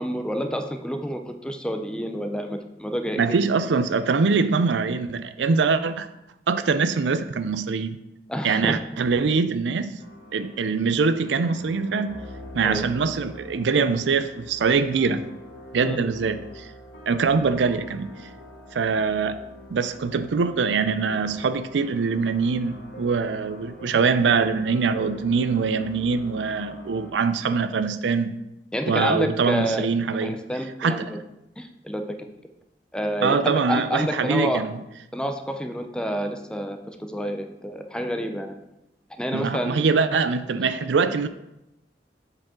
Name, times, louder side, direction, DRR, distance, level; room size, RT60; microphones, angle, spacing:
voice 1, 0.0-3.4 8.3-8.7 12.6-12.9 15.8-16.1 28.7-29.9 30.2-31.2 31.6-32.3 32.9-34.6 35.1-38.6 39.2-39.8, equal, 5° left, 5 dB, 0.5 m, -29 dB
voice 2, 3.2-6.1 6.5-8.0 8.4-10.0 10.3-12.2 12.5-15.2 15.7-16.7 17.1-18.1 18.7-19.4 19.7-28.4 28.9-30.4 30.8-31.1 33.2-34.7 39.3-41.3, right 5 dB, 85° right, 12 dB, 0.4 m, -23 dB
sound 1, 10.0-27.1, equal, 75° left, 1.3 m, -44 dB
7.4 x 4.9 x 3.7 m, 0.89 s
head